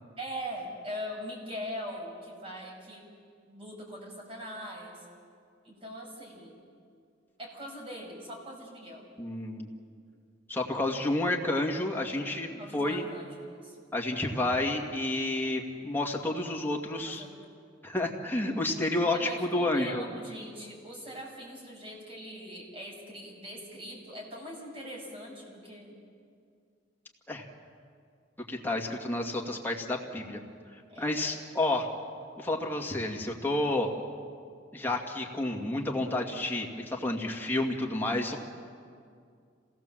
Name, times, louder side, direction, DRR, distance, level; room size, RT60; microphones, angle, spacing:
voice 1, 0.2-3.0 3.5-5.0 5.6-6.6 7.4-9.0 12.6-13.8 17.1-17.3 19.1-25.9 30.9-31.5, equal, 30° right, -1 dB, 5.7 m, -42 dB
voice 2, 9.2-9.7 10.5-13.1 13.9-17.2 17.8-20.0 27.3-27.5 28.5-30.4 31.0-31.9 32.4-33.9 34.7-38.4, left 2 dB, 10° left, 0 dB, 2.0 m, -30 dB
27.0 x 17.5 x 7.5 m, 2.2 s
head